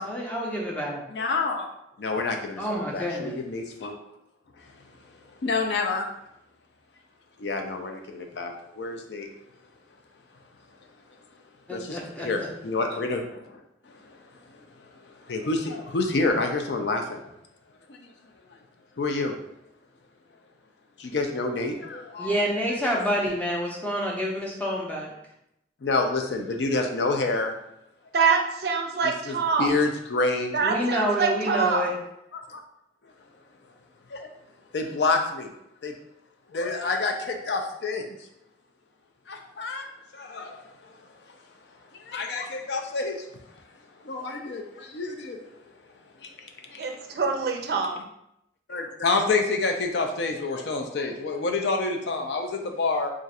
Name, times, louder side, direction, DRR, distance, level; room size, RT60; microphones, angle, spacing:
voice 1, 0.0-1.0 2.6-3.4 11.7-12.5 22.2-25.1 30.6-31.9, equal, 10° left, -3 dB, 0.5 m, -28 dB
voice 2, 1.1-1.7 2.0-4.0 4.6-4.7 5.4-6.1 7.4-9.3 11.7-12.0 12.2-13.6 13.9-17.2 17.9-18.1 19.0-19.3 21.0-22.5 25.8-27.5 29.0-30.6 32.3-32.6 34.1-34.3 34.7-35.5 35.8-35.9 36.5-38.2 39.3-41.4 41.9-43.3 44.0-45.5 46.2-47.2 48.7-53.1, left 3 dB, 65° left, 3 dB, 0.5 m, -28 dB
voice 3, 28.1-29.7 30.5-31.8 46.8-48.0, right 5 dB, 55° right, 3 dB, 0.4 m, -25 dB
2.4 x 2.4 x 4.1 m, 0.80 s
head